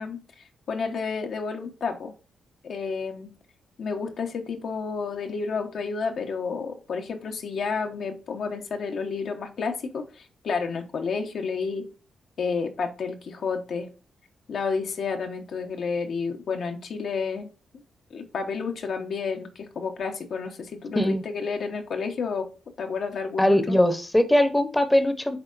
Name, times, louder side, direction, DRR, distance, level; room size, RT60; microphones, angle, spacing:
voice 1, 0.0-2.1 2.6-3.3 3.8-11.9 12.4-13.9 14.5-17.5 18.1-22.5 22.8-23.8, left 5 dB, 65° left, 1.1 m, -30 dB
voice 2, 23.4-25.4, left 1 dB, 10° left, 0.9 m, -21 dB
9.8 x 3.7 x 2.6 m
cardioid pair, 80°, 0 cm